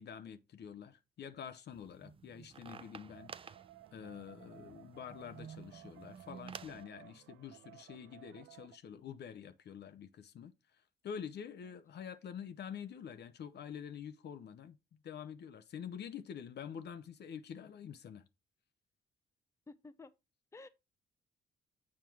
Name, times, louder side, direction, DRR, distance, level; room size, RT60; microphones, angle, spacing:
voice 1, 0.0-3.5 3.9-10.5 11.0-14.8 15.0-18.2, left 8 dB, 60° left, 0.8 m, -47 dB
sound 1, 1.7-6.8, right 6 dB, 30° right, 0.4 m, -52 dB
sound 2, 3.1-8.8, right 15 dB, 85° right, 0.5 m, -58 dB
voice 2, 19.7-20.1 20.5-20.7, left 3 dB, 15° left, 0.6 m, -52 dB
7.4 x 4.4 x 4.5 m
cardioid pair, 90°, 20 cm